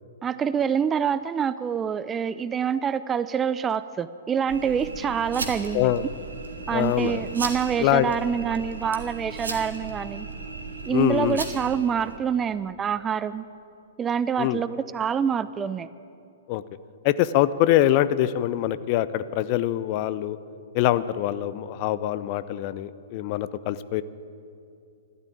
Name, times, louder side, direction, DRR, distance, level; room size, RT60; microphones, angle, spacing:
voice 1, 0.2-6.1 6.7-10.3 10.8-13.5 14.0-15.9, right 7 dB, 15° right, 15 dB, 0.4 m, -26 dB
sound 1, 4.5-12.2, right 4 dB, 70° right, 1.8 m, -36 dB
voice 2, 6.7-7.2 7.8-8.1 10.9-11.4 14.4-14.6 16.5-16.6 17.0-20.4 20.7-24.0, left 13 dB, 40° left, 16 dB, 0.5 m, -24 dB
13.5 x 12.5 x 8.4 m, 2.5 s
figure-of-eight pair, 115°, 0 cm